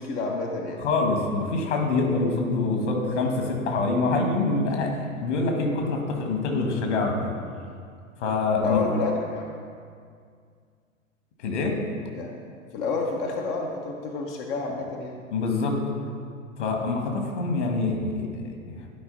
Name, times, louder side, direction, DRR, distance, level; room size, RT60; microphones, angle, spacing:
voice 1, 0.0-0.8 3.5-3.6 8.6-9.5 12.1-12.3 12.7-15.2, left 3 dB, 20° left, 1 dB, 0.4 m, -29 dB
voice 2, 0.8-7.3 8.2-8.8 11.4-11.7 15.3-15.8 16.6-18.8, left 3 dB, 60° left, 2 dB, 1.6 m, -25 dB
11.0 x 4.8 x 4.0 m, 2.2 s
figure-of-eight pair, 105°, 40 cm